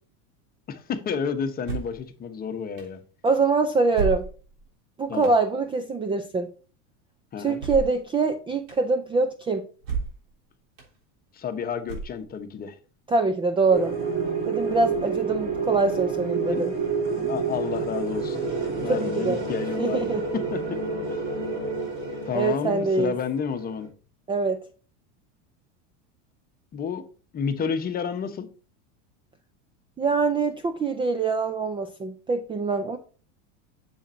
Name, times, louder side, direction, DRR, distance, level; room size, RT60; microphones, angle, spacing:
voice 1, 0.7-3.0 5.1-5.3 7.3-7.6 11.3-12.8 16.5-16.6 17.1-18.4 18.8-20.8 21.1-21.2 22.2-23.9 26.7-27.0 27.3-28.5, left 6 dB, 25° left, 1.0 m, -30 dB
sound 1, 1.6-2.0 2.8-2.9 3.9-4.6 5.2-5.4 7.6-8.0 8.7-8.8 9.8-10.3 10.8-10.9 11.8-12.4, right 5 dB, 80° right, 3.6 m, -31 dB
voice 2, 3.2-4.3 5.0-6.5 7.4-9.7 13.1-14.0 14.4-16.7 18.8-19.4 19.8-20.2 22.3-23.1 24.3-24.6 30.0-33.0, right 3 dB, 15° right, 0.5 m, -24 dB
sound 2, 13.7-23.9, right 4 dB, 35° right, 3.8 m, -29 dB
7.2 x 7.2 x 2.6 m
supercardioid pair, 140°, 36 cm